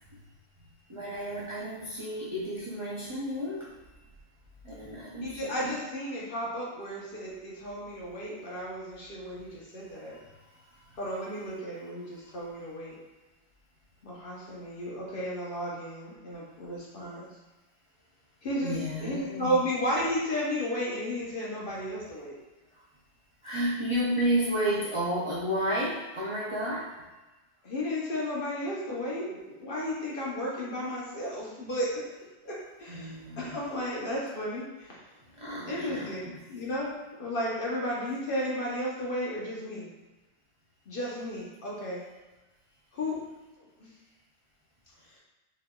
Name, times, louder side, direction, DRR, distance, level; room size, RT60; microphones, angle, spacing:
voice 1, 0.9-3.8 4.6-5.8 10.1-10.3 10.7-11.0 18.6-19.6 22.7-22.8 23.4-26.9 32.9-33.6 35.3-36.4, equal, 45° right, -7 dB, 0.4 m, -32 dB
voice 2, 5.2-10.2 10.9-13.0 14.0-17.3 18.4-22.4 27.6-31.9 32.4-35.1 35.7-39.9 40.9-42.0 42.9-43.2 43.8-43.9 45.1-45.2, equal, 50° left, -5 dB, 0.8 m, -33 dB
3.9 x 3.0 x 2.3 m, 1.1 s
omnidirectional pair, 1.3 m